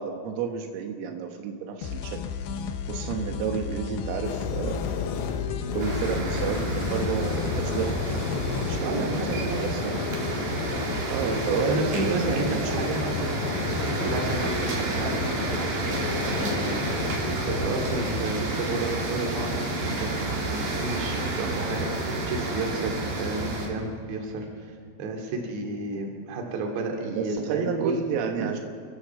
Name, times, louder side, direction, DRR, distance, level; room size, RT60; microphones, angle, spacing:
voice 1, 0.0-2.2 2.9-4.8 5.7-10.0 11.1-12.9 27.1-28.6, right 6 dB, 85° right, 3 dB, 4.0 m, -31 dB
sound 1, 1.8-8.8, left 6 dB, 70° left, 2.6 m, -33 dB
sound 2, 4.2-18.2, left 6 dB, 85° left, 4.1 m, -33 dB
sound 3, 5.8-23.7, right 2 dB, 45° right, 3.9 m, -30 dB
voice 2, 8.8-9.7 11.5-15.9 16.2-16.8 17.5-21.9 22.3-27.9, right 2 dB, 60° right, 2 dB, 4.4 m, -32 dB
29.0 x 14.0 x 7.4 m, 2.1 s
omnidirectional pair, 5.9 m